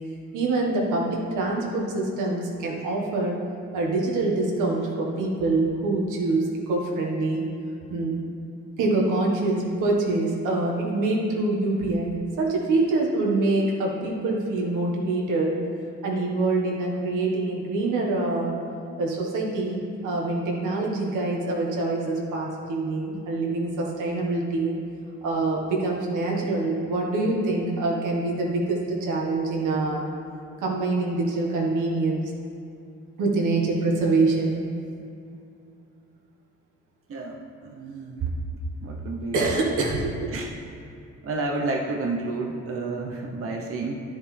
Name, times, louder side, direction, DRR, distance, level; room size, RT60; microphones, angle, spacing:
voice 1, 0.3-3.4 3.7-7.5 7.9-8.1 8.8-15.6 16.0-18.5 19.0-24.8 25.2-30.0 30.6-32.2 33.2-34.7 39.3-40.3, right 2 dB, 85° right, -2 dB, 1.6 m, -25 dB
voice 2, 37.1-38.3 38.8-39.4 40.3-40.5 41.2-44.0, right 3 dB, 45° right, 0 dB, 0.9 m, -30 dB
11.0 x 7.3 x 3.4 m, 2.6 s
cardioid pair, 90°, 30 cm